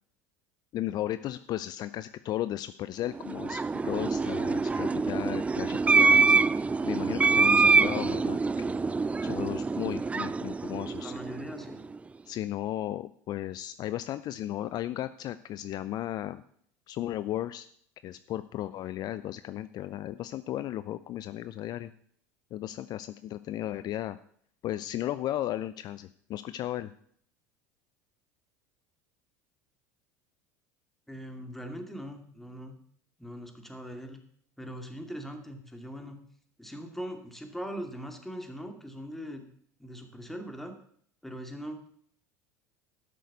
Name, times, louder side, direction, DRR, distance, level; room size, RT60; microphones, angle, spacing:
voice 1, 0.7-6.4 6.8-8.8 9.2-11.1 12.3-16.4 16.9-17.7 18.0-21.9 22.5-24.2 24.6-26.9, left 13 dB, 50° left, 14 dB, 0.5 m, -35 dB
sound 1, 3.2-11.7, right 4 dB, 15° right, 0.3 m, -25 dB
voice 2, 11.0-11.8 31.1-32.8 33.2-34.2 34.6-36.2 36.6-39.5 39.8-40.7 41.2-41.8, equal, 5° left, 4 dB, 2.4 m, -40 dB
12.0 x 6.4 x 6.8 m, 0.62 s
hypercardioid pair, 80°, 9 cm